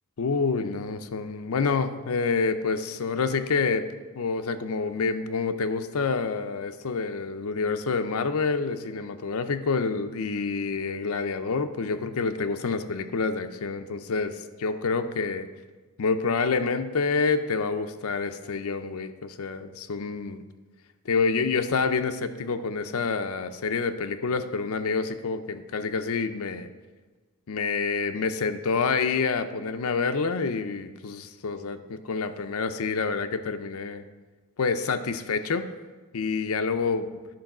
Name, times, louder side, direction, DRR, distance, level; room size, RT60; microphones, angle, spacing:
voice 1, 0.2-3.9 4.1-15.5 16.0-20.4 21.1-26.7 27.5-34.0 34.6-35.7 36.1-37.2, left 4 dB, 70° left, 9 dB, 0.5 m, -27 dB
10.5 x 4.6 x 5.9 m, 1.3 s
head